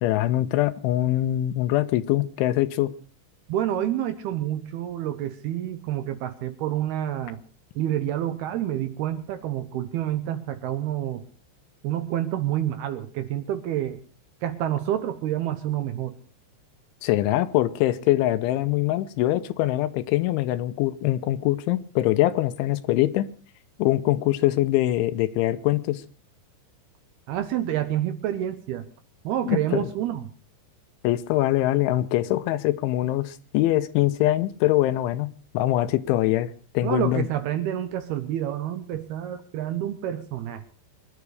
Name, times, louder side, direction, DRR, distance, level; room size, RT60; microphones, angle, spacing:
voice 1, 0.0-2.9 17.0-23.3 23.8-26.0 29.5-29.9 31.0-37.3, left 15 dB, 80° left, 13 dB, 3.3 m, -23 dB
voice 2, 3.5-7.4 7.8-11.2 11.8-14.0 14.4-16.2 27.3-28.9 29.2-30.2 36.8-40.7, right 11 dB, 75° right, 10 dB, 2.5 m, -28 dB
23.5 x 11.5 x 4.9 m, 0.38 s
omnidirectional pair, 5.4 m